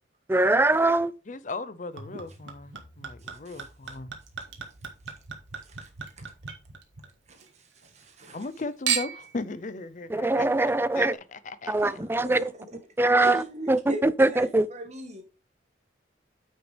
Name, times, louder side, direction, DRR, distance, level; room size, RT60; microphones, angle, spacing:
voice 1, 0.3-1.1 10.1-11.1 11.7-12.5 13.0-14.7, right 2 dB, 10° right, 0.3 m, -22 dB
voice 2, 1.3-4.1 8.3-10.5 10.9-12.0, left 3 dB, 45° left, 0.6 m, -37 dB
Chink clink / Liquid, 2.0-7.5 7.8-8.5 8.9-9.4 10.1-10.2, right 8 dB, 90° right, 1.7 m, -36 dB
voice 3, 7.3-8.5 11.8-12.5 13.2-15.2, equal, 40° right, 1.5 m, -39 dB
9.3 x 6.3 x 3.3 m
head